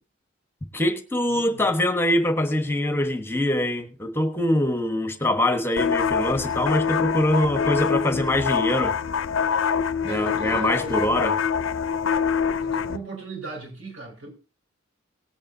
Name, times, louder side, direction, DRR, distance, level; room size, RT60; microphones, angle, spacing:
voice 1, 0.7-8.9 10.0-11.4, left 1 dB, 10° left, 1.2 m, -23 dB
voice 2, 1.3-1.6 10.0-11.2 12.6-14.3, right 4 dB, 85° right, 5.4 m, -38 dB
sound 1, 5.8-13.0, left 6 dB, 80° left, 0.6 m, -25 dB
19.0 x 8.6 x 2.7 m
head